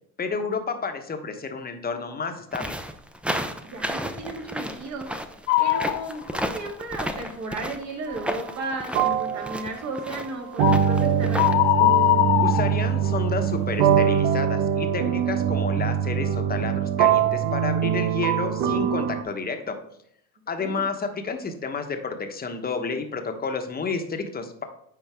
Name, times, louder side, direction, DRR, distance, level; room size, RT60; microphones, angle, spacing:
voice 1, 0.2-2.8 12.4-19.7 20.5-24.6, left 4 dB, 25° left, 6 dB, 1.1 m, -30 dB
sound 1, 2.5-11.5, equal, 5° right, 0.6 m, -32 dB
voice 2, 3.7-5.1 5.6-11.6 20.6-20.8, right 2 dB, 45° right, 2 dB, 2.0 m, -34 dB
sound 2, 5.5-6.1 6.6-6.7 10.6-10.9 11.3-13.3, left 18 dB, 75° left, 0.5 m, -21 dB
sound 3, 8.1-8.3 8.9-19.2, right 9 dB, 70° right, 0.7 m, -23 dB
9.6 x 4.0 x 3.5 m, 0.72 s
hypercardioid pair, 80°, 37 cm